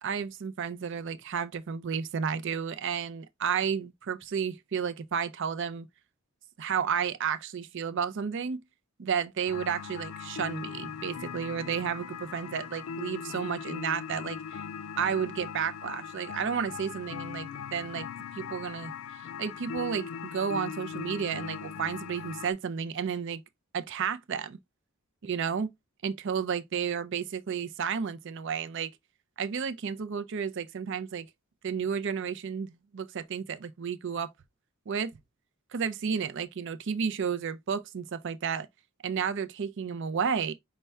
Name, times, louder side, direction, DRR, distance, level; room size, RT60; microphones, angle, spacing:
voice 1, 0.0-5.9 6.6-8.6 9.0-14.6 15.0-18.1 18.3-18.9 19.2-23.4 23.7-24.6 25.2-25.7 26.0-28.9 29.4-31.3 31.6-34.3 34.9-35.1 35.7-38.7 39.0-40.5, right 7 dB, 55° right, 0.5 m, -32 dB
sound 1, 9.5-22.5, left 7 dB, 75° left, 0.4 m, -40 dB
5.4 x 2.2 x 3.3 m
head